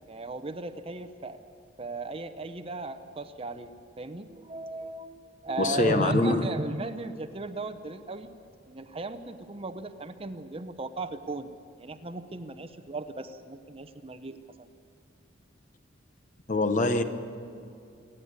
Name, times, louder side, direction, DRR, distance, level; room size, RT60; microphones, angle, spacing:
voice 1, 0.1-1.4 1.8-8.3 8.7-11.5 11.8-14.7, right 2 dB, 30° right, 10 dB, 0.8 m, -36 dB
voice 2, 5.6-6.5 16.5-17.0, left 2 dB, 40° left, 8 dB, 1.1 m, -24 dB
27.5 x 10.0 x 9.5 m, 2.5 s
head